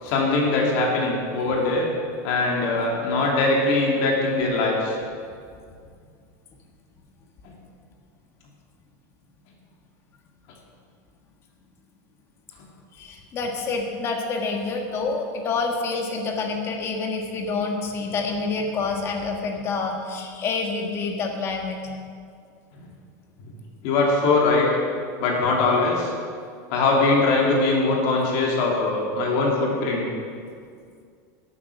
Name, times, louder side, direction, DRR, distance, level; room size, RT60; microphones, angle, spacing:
voice 1, 0.0-1.9 2.2-5.0 7.4-7.5 22.7-22.8 23.8-24.7 25.2-26.1 26.7-30.1, left 3 dB, 55° left, -2 dB, 2.8 m, -21 dB
voice 2, 12.9-21.8, left 4 dB, 30° left, 2 dB, 1.5 m, -27 dB
12.0 x 8.6 x 6.1 m, 2.2 s
supercardioid pair, 160°, 9 cm